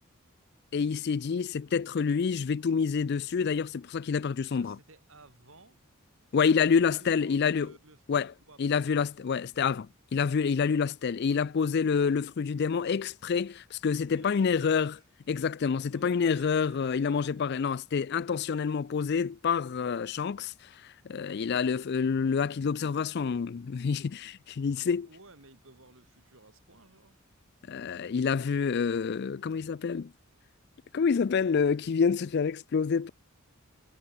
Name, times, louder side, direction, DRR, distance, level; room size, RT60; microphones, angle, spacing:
voice 1, 0.7-4.8 6.3-7.7 8.1-8.3 8.6-14.9 15.3-20.5 20.8-25.1 27.7-30.1 30.9-33.1, left 6 dB, 50° left, 0.4 m, -27 dB
voice 2, 4.4-5.8 6.8-8.8 11.2-11.4 14.0-15.0 15.9-17.8 24.7-27.2, right 2 dB, 70° right, 5.1 m, -56 dB
head